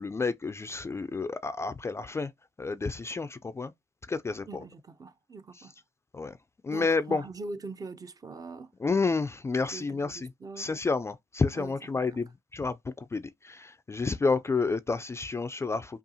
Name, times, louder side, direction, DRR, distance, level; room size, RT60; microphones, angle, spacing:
voice 1, 0.0-2.3 2.6-3.7 4.1-4.6 6.1-6.4 6.6-7.2 8.8-10.3 10.6-16.0, left 4 dB, 20° left, 0.3 m, -30 dB
voice 2, 4.5-5.7 6.7-8.7 9.7-10.7 11.5-12.2 14.0-14.4, right 3 dB, 30° right, 0.5 m, -43 dB
5.3 x 2.4 x 2.7 m
cardioid pair, 95°, 12 cm